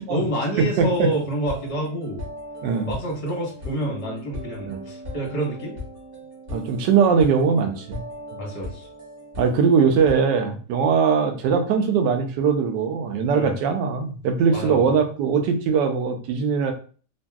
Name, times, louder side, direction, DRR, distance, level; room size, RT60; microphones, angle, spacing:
voice 1, 0.0-2.2 2.9-5.7 8.4-8.9 13.3-13.5 14.5-14.8, right 1 dB, 30° left, -3 dB, 0.7 m, -28 dB
voice 2, 0.6-1.1 2.6-2.9 4.6-4.8 6.5-8.0 8.3-8.4 9.4-16.7, right 6 dB, 80° right, 5 dB, 1.2 m, -21 dB
sound 1, 0.8-10.2, left 1 dB, 45° right, 0.8 m, -38 dB
3.0 x 2.6 x 2.2 m, 0.40 s
omnidirectional pair, 1.9 m